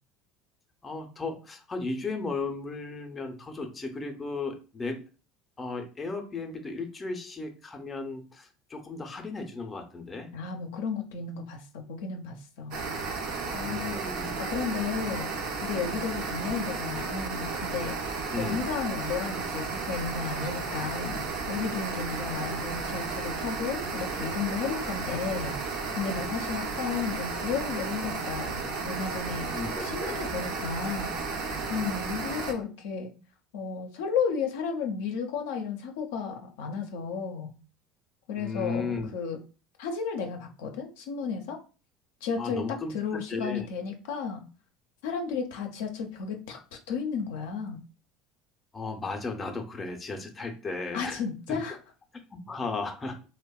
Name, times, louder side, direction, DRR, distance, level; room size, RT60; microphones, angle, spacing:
voice 1, 0.8-5.0 5.6-10.3 13.7-14.3 18.3-18.7 29.5-30.2 38.4-39.1 42.4-42.9 43.3-43.7 48.7-51.2 51.5-51.6 52.5-53.2, left 3 dB, 20° left, 4 dB, 0.5 m, -35 dB
voice 2, 10.3-12.8 13.5-14.0 14.4-15.3 15.6-29.5 29.8-33.1 33.5-37.5 38.3-39.4 39.8-41.6 42.2-44.4 45.0-47.8 50.9-51.8, left 5 dB, 85° left, 3 dB, 0.4 m, -33 dB
sound 1, 12.7-32.5, right 4 dB, 65° right, 0.5 m, -33 dB
2.6 x 2.1 x 2.3 m, 0.34 s
supercardioid pair, 95°, 0 cm